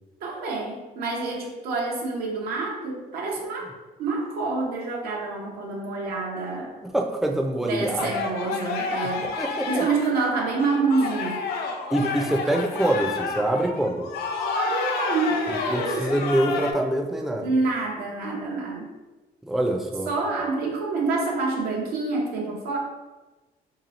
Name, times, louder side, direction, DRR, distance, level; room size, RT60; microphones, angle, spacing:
voice 1, 0.2-3.7 4.0-6.8 7.7-9.3 9.7-11.4 14.5-16.2 17.4-18.9 20.1-22.8, right 3 dB, 85° right, -1 dB, 0.7 m, -27 dB
voice 2, 6.8-8.1 9.4-9.8 11.9-14.0 15.7-17.5 19.4-20.1, right 1 dB, ahead, 2 dB, 0.4 m, -25 dB
sound 1, 8.0-16.7, left 4 dB, 85° left, 0.5 m, -30 dB
3.0 x 2.9 x 4.0 m, 1.2 s
cardioid pair, 140°, 16 cm